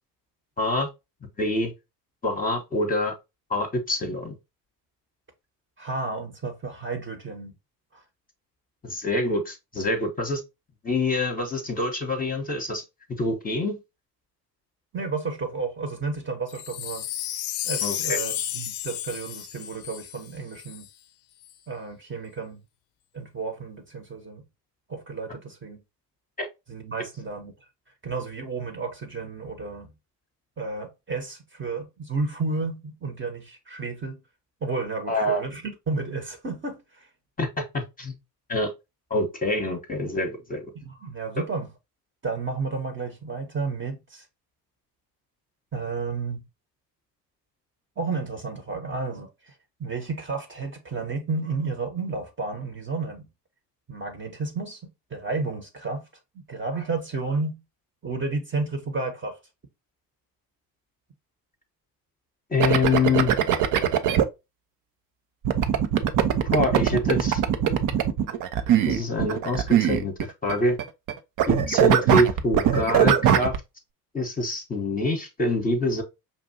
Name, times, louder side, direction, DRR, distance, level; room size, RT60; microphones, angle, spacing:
voice 1, 0.6-0.9 1.4-1.7 2.2-3.1 3.5-4.3 8.8-10.4 10.8-12.8 13.2-13.8 17.8-18.2 26.4-26.5 35.1-35.4 37.4-38.1 38.5-38.7 39.1-40.6 62.5-63.3 66.5-67.4 68.9-70.1 70.4-70.8 71.5-73.6 74.1-76.0, left 2 dB, 20° left, 1.0 m, -25 dB
voice 2, 5.8-7.5 14.9-17.0 17.6-20.9 21.7-22.6 23.1-24.4 24.9-25.8 26.7-27.5 28.0-29.9 30.6-34.2 34.6-37.1 40.7-41.7 42.2-44.2 45.7-46.4 48.0-49.5 49.8-53.3 53.9-54.8 55.1-56.0 56.3-57.6 58.0-59.4, right 4 dB, 25° right, 1.0 m, -32 dB
Wind chime, 16.5-20.9 21.4-21.5, left 12 dB, 50° left, 0.6 m, -32 dB
sound 1, 62.6-64.2 65.4-70.5 70.8-71.1 71.4-73.6, right 10 dB, 40° right, 0.6 m, -21 dB
5.4 x 2.6 x 2.7 m
figure-of-eight pair, 60°, 49 cm